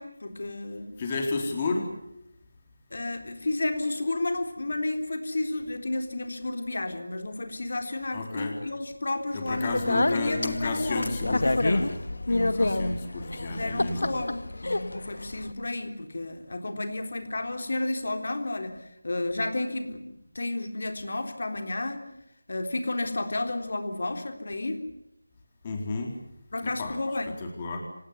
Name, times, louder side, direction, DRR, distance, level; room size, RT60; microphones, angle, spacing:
voice 1, 0.0-1.0 2.9-11.2 12.5-12.9 13.5-20.0 20.3-22.0 22.5-24.8 26.5-27.3, left 2 dB, 55° left, 6 dB, 3.8 m, -31 dB
voice 2, 1.0-1.9 8.1-8.5 9.3-12.0 12.3-14.2 25.6-26.1 26.6-27.0 27.4-27.8, left 3 dB, 20° left, 2 dB, 3.9 m, -32 dB
Speech, 9.5-15.5, left 2 dB, 75° left, 2.2 m, -28 dB
26.5 x 19.0 x 9.8 m, 0.82 s
figure-of-eight pair, 170°, 0 cm